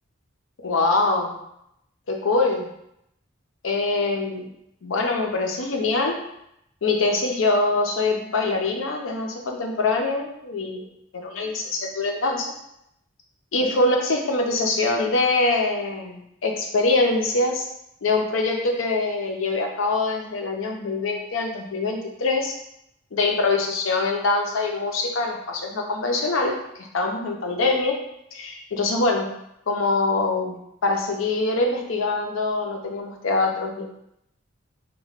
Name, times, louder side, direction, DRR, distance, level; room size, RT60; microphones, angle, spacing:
voice 1, 0.6-1.4 2.1-2.7 3.6-4.5 4.8-6.2 6.8-12.5 13.5-17.7 18.0-22.6 23.1-27.9 28.3-29.3 29.7-33.9, left 3 dB, 80° left, 2 dB, 0.6 m, -24 dB
2.9 x 2.2 x 4.2 m, 0.79 s
head